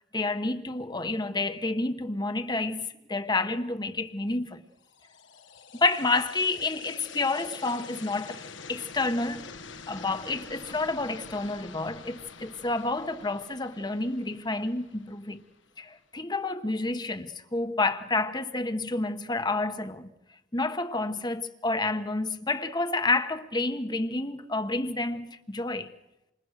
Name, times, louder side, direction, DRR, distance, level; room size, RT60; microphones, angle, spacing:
voice 1, 0.1-4.6 5.7-8.4 8.7-9.5 9.9-15.4 15.8-20.1 20.5-25.9, left 2 dB, 20° left, 1.1 m, -29 dB
sound 1, 4.8-15.9, left 5 dB, 70° left, 1.3 m, -46 dB
28.5 x 28.0 x 6.5 m
head